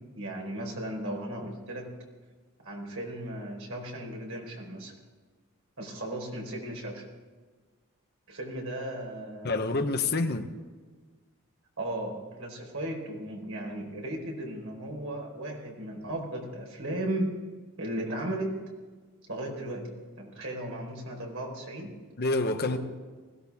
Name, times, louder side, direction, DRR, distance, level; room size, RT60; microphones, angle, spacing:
voice 1, 0.1-1.9 2.6-4.9 5.8-7.1 8.3-9.7 11.8-17.4 17.8-18.6 19.3-19.9 20.2-21.9 22.7-22.8, right 1 dB, 65° right, 0 dB, 4.3 m, -36 dB
voice 2, 9.4-10.5 22.2-22.8, left 3 dB, 45° left, 8 dB, 0.9 m, -27 dB
21.0 x 16.0 x 3.6 m, 1.4 s
head